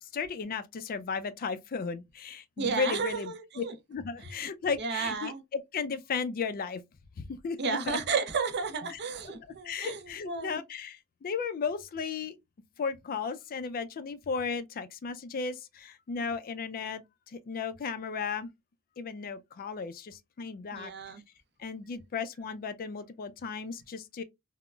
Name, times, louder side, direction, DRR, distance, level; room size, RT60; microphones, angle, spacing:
voice 1, 0.0-3.6 3.9-6.8 7.2-8.0 8.9-9.0 9.4-12.4 12.8-18.5 19.0-20.9 21.6-24.2, left 5 dB, 40° left, 0.3 m, -35 dB
voice 2, 2.6-3.7 4.8-5.4 7.6-10.0 10.3-10.6 20.7-21.2, right 5 dB, 50° right, 0.6 m, -32 dB
3.6 x 2.0 x 2.2 m
head